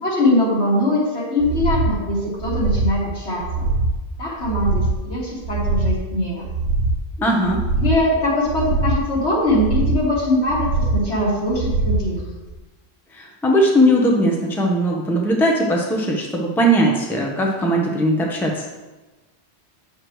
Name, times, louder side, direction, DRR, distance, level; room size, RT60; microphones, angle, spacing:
voice 1, 0.0-3.7 4.2-6.5 7.8-12.2, left 1 dB, 75° left, -6 dB, 2.9 m, -21 dB
sound 1, 1.4-2.0 2.4-3.0 3.4-4.0 4.4-5.0 5.4-6.0 6.4-7.0 7.4-8.0 8.4-9.0 9.4-10.0 10.5-11.0 11.5-12.1 12.5-12.6, right 2 dB, 85° right, 1.1 m, -22 dB
voice 2, 7.2-7.6 13.1-18.7, equal, ahead, -1 dB, 0.9 m, -19 dB
9.6 x 6.6 x 3.2 m, 1.1 s
omnidirectional pair, 1.1 m